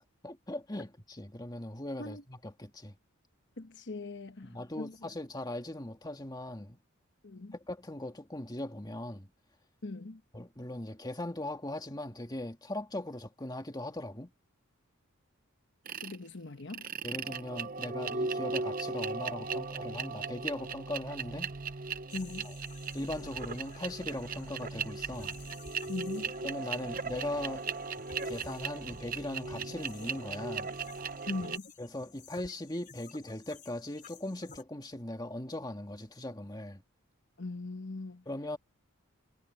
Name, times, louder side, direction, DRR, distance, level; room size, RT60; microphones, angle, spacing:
voice 1, 0.2-3.0 4.4-6.8 7.5-9.3 10.3-14.3 17.0-21.5 22.4-22.6 22.9-25.3 26.4-27.7 28.2-30.7 31.8-36.8 38.3-38.6, left 1 dB, 20° left, 2.0 m, -39 dB
voice 2, 3.6-4.9 7.2-7.5 9.8-10.2 16.0-16.8 22.1-22.5 25.9-26.3 31.3-31.7 37.4-38.2, left 2 dB, 55° left, 1.1 m, -40 dB
sound 1, 15.9-16.2 16.7-31.6, right 4 dB, 40° right, 0.8 m, -37 dB
sound 2, 22.1-34.6, left 5 dB, 40° left, 5.0 m, -54 dB
head